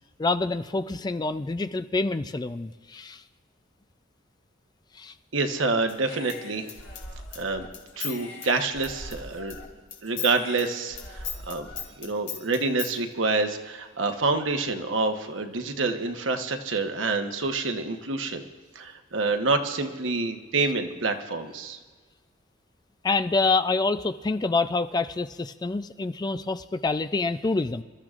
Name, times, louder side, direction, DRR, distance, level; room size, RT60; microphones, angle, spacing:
voice 1, 0.2-3.2 4.9-5.1 23.0-27.8, left 3 dB, 20° left, 11 dB, 0.4 m, -27 dB
voice 2, 5.3-6.7 7.3-7.7 8.0-9.6 10.0-11.7 12.0-18.5 18.7-21.8, right 3 dB, 85° right, 5 dB, 1.1 m, -27 dB
Human voice / Scissors, 5.9-9.6 9.9-12.9, left 5 dB, 85° left, 3.0 m, -38 dB
27.5 x 13.5 x 2.5 m, 1.4 s
head